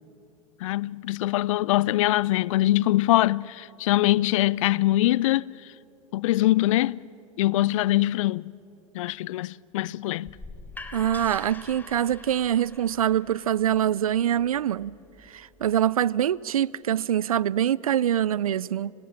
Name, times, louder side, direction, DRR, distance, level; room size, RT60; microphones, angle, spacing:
voice 1, 0.6-5.5 6.1-7.0 7.4-8.5 8.9-10.3, left 16 dB, 65° left, 0.5 m, -23 dB
sound 1, 10.2-16.0, left 3 dB, 10° left, 2.0 m, -45 dB
voice 2, 10.9-14.9 15.3-18.9, right 10 dB, 85° right, 0.4 m, -24 dB
28.5 x 19.0 x 7.4 m
hypercardioid pair, 95°, 18 cm